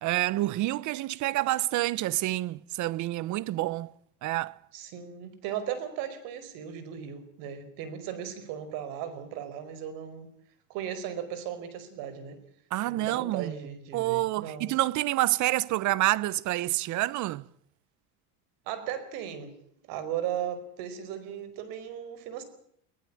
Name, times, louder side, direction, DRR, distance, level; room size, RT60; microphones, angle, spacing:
voice 1, 0.0-3.9 4.2-4.6 12.7-13.6 13.9-17.4, right 17 dB, 50° right, 0.9 m, -28 dB
voice 2, 4.7-10.3 10.7-12.4 12.9-14.7 18.7-19.5 19.9-22.4, right 9 dB, 70° right, 4.9 m, -36 dB
21.0 x 19.5 x 8.7 m
supercardioid pair, 110°, 37 cm